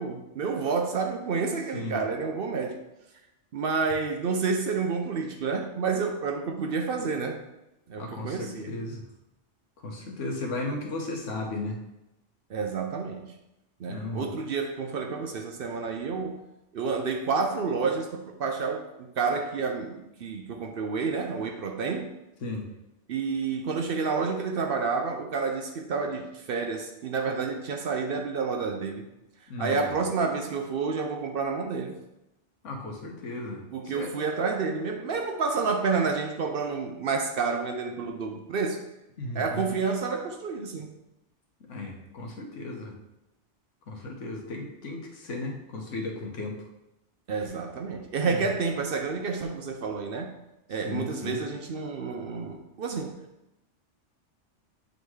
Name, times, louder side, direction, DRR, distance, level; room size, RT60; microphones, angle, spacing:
voice 1, 0.0-2.8 3.5-7.4 7.9-8.7 12.5-13.3 13.8-16.4 16.7-22.1 23.1-29.1 29.6-32.0 33.7-38.8 39.3-40.9 47.3-50.3 50.7-53.2, right 4 dB, 60° right, 4 dB, 0.7 m, -29 dB
voice 2, 8.0-9.0 9.8-11.8 13.9-14.3 22.4-22.7 29.5-29.9 32.6-34.1 39.2-39.7 41.7-42.9 43.9-46.6 48.2-48.5 50.7-51.4, left 2 dB, 80° left, 1 dB, 1.4 m, -35 dB
8.4 x 3.9 x 3.1 m, 0.93 s
omnidirectional pair, 1.3 m